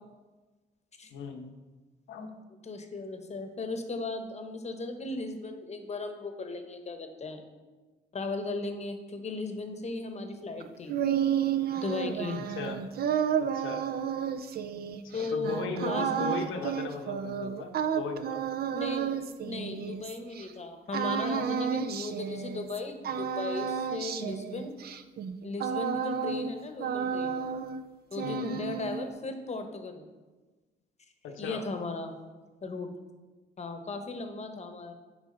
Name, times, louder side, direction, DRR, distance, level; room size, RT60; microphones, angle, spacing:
voice 1, 1.1-1.5 2.1-2.3 12.5-12.8 13.4-13.8 15.1-18.4 28.2-28.7 31.2-31.6, left 4 dB, 80° left, 4 dB, 0.9 m, -37 dB
voice 2, 2.6-7.4 8.1-11.0 11.7-12.4 15.1-16.3 18.7-24.7 25.4-27.4 28.1-30.0 31.4-32.1 32.6-32.9 33.6-34.9, left 3 dB, 35° left, 6 dB, 0.9 m, -36 dB
sound 1, 10.6-20.5 20.9-22.8 23.0-26.5 26.8-27.8 28.1-29.1, right 8 dB, 50° right, 0.5 m, -31 dB
8.6 x 4.8 x 3.8 m, 1.3 s
cardioid pair, 90°, 20 cm